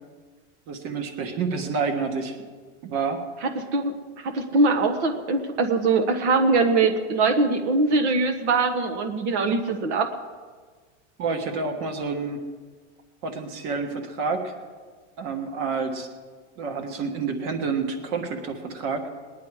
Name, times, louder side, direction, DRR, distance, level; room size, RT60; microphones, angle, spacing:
voice 1, 0.7-2.3 2.8-3.2 11.2-12.4 13.2-14.5 15.2-16.1 16.6-19.0, right 4 dB, 40° right, 6 dB, 1.5 m, -28 dB
voice 2, 3.6-10.1, right 3 dB, 65° right, 5 dB, 1.4 m, -22 dB
19.5 x 10.5 x 4.8 m, 1.5 s
supercardioid pair, 165°, 36 cm